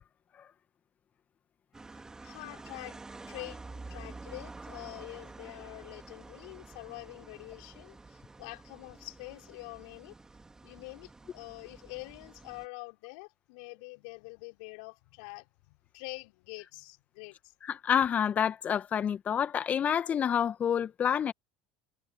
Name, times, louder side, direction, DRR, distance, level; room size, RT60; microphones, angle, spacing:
sound 1, 1.7-12.7, right 3 dB, 15° right, 3.3 m, -49 dB
voice 1, 2.2-3.0 3.3-10.1 10.6-17.4, left 31 dB, 65° left, 5.7 m, -46 dB
voice 2, 17.7-21.3, left 8 dB, 35° left, 2.1 m, -28 dB
hypercardioid pair, 70°, 4 cm